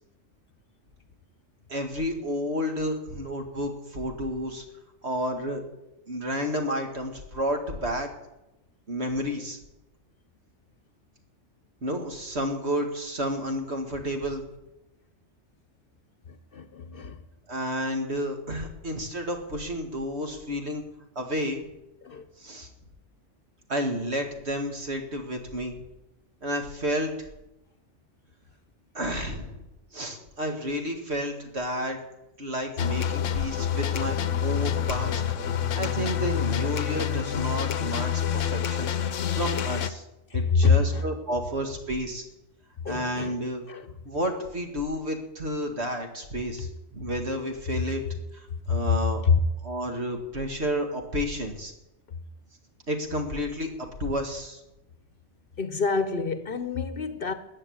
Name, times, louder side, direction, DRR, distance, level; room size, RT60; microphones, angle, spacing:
voice 1, 1.7-4.6 5.0-5.6 6.1-8.1 8.9-9.6 11.8-14.5 17.5-20.8 21.2-21.6 22.4-22.7 23.7-25.8 26.4-27.3 28.9-29.6 29.9-32.0 32.4-34.2 34.4-35.2 35.7-38.9 39.3-40.0 40.3-42.2 42.9-43.6 44.1-48.0 48.3-49.2 49.6-51.7 52.9-54.6, equal, 60° right, 2.3 m, -31 dB
voice 2, 16.5-17.2 22.0-22.3 37.3-37.4 40.3-41.1 42.8-43.4 43.7-43.9 48.7-48.8 49.2-49.4 55.6-57.3, left 5 dB, 50° left, 1.0 m, -25 dB
sound 1, 32.8-39.9, left 9 dB, 80° left, 1.1 m, -27 dB
14.5 x 9.5 x 8.6 m
omnidirectional pair, 1.3 m